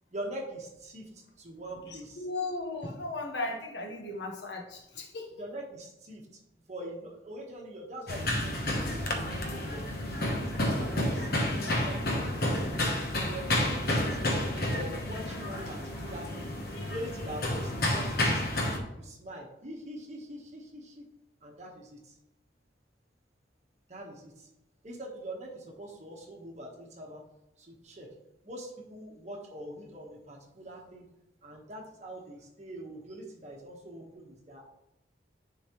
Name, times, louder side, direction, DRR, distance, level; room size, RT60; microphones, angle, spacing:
voice 1, 0.1-2.3 5.3-6.2 6.7-10.0 10.3-11.3 11.6-12.9 13.3-14.3 14.7-16.5 16.8-18.7 18.9-21.0 21.4-22.1 23.9-24.5 24.8-27.2 27.6-28.1 28.4-31.1 31.4-34.6, right 1 dB, 40° right, -1 dB, 1.3 m, -43 dB
voice 2, 1.9-5.3, left 2 dB, 75° left, 1 dB, 1.2 m, -36 dB
sound 1, 8.1-18.8, left 1 dB, 55° left, 1.0 m, -30 dB
10.0 x 4.0 x 3.1 m, 0.88 s
head